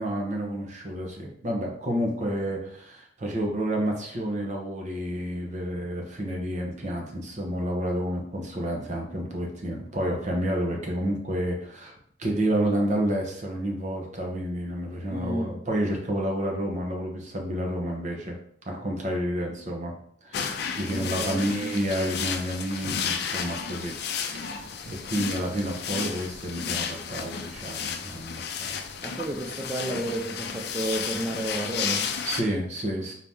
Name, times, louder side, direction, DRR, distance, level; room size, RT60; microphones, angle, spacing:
voice 1, 0.0-11.9 12.2-18.4 18.7-19.9 20.2-24.0 24.3-28.9 32.3-33.1, right 1 dB, 40° right, 1 dB, 0.9 m, -30 dB
voice 2, 15.1-15.6 20.9-21.7 29.0-32.1, right 1 dB, 15° right, -1 dB, 0.4 m, -32 dB
sound 1, 20.3-32.4, left 6 dB, 60° left, 0.4 m, -33 dB
4.2 x 2.8 x 3.5 m, 0.66 s
head